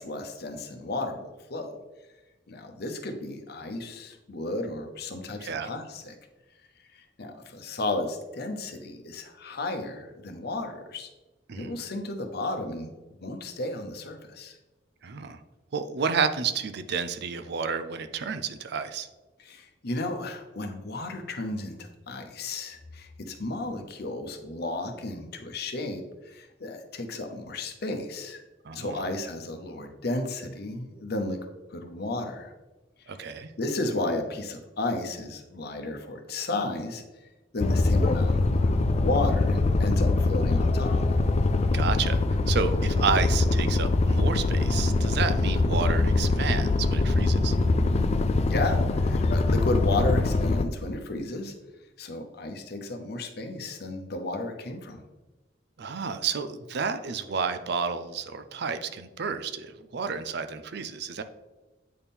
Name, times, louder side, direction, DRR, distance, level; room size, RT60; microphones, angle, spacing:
voice 1, 0.0-1.8 2.5-6.1 6.9-11.1 11.5-12.9 13.2-14.6 19.4-28.4 28.7-31.4 31.7-32.5 33.6-37.0 37.5-41.0 48.5-51.5 52.0-55.0, left 2 dB, 60° left, 5 dB, 0.9 m, -33 dB
voice 2, 15.0-15.4 15.7-19.1 28.6-29.0 33.1-33.5 41.7-47.6 55.8-61.2, right 5 dB, 60° right, 10 dB, 0.5 m, -31 dB
sound 1, 37.6-50.7, left 3 dB, 35° left, 0.4 m, -23 dB
8.5 x 4.3 x 3.6 m, 1.1 s
head